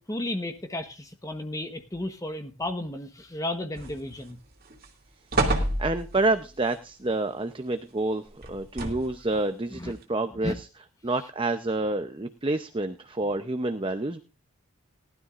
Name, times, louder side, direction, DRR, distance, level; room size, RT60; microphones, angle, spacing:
voice 1, 0.0-4.4 9.7-9.9 10.4-10.6, left 1 dB, 15° left, 7 dB, 1.1 m, -33 dB
sound 1, 3.8-4.3 4.7-4.8 5.3-6.3 8.4-9.3 10.0-10.1, right 2 dB, 40° right, 2.5 m, -28 dB
voice 2, 5.4-8.2 8.5-10.7 11.0-14.2, right 2 dB, 25° right, 8 dB, 0.7 m, -28 dB
19.0 x 12.5 x 2.5 m, 0.31 s
head